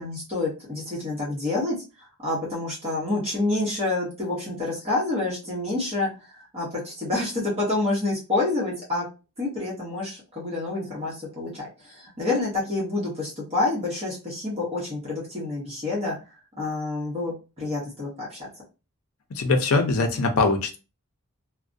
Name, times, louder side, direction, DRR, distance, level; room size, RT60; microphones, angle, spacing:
voice 1, 0.0-1.8 2.2-9.1 9.4-16.1 16.6-18.5, left 2 dB, 25° right, -6 dB, 0.9 m, -28 dB
voice 2, 19.3-20.8, left 3 dB, 75° left, 5 dB, 0.5 m, -22 dB
2.4 x 2.1 x 2.5 m, 0.31 s
head